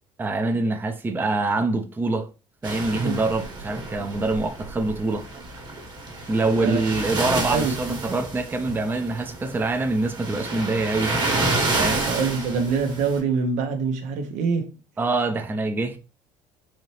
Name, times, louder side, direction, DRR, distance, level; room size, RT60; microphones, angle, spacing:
voice 1, 0.2-2.3 2.6-5.3 6.3-11.2 11.8-12.0 15.0-16.0, right 2 dB, 15° right, 0.5 m, -25 dB
sound 1, 2.6-13.2, right 2 dB, 35° right, 1.3 m, -29 dB
voice 2, 7.5-8.0 12.1-14.8, right 5 dB, 75° right, 0.9 m, -25 dB
4.1 x 2.8 x 3.2 m
cardioid pair, 120°, 12 cm